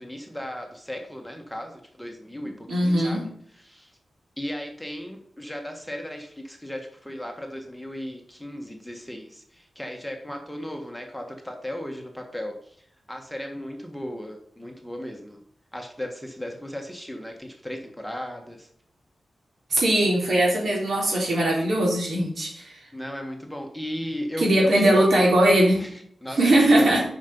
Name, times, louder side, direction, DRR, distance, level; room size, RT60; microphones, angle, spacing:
voice 1, 0.0-3.3 3.6-3.9 4.4-12.6 13.1-15.4 15.7-18.7 22.9-25.1 25.8-27.0, equal, ahead, 2 dB, 1.6 m, -36 dB
voice 2, 2.7-3.2 19.7-22.7 24.4-25.8 26.3-27.0, right 1 dB, 75° right, -3 dB, 3.7 m, -20 dB
7.1 x 5.9 x 5.4 m, 0.63 s
cardioid pair, 75°, 0 cm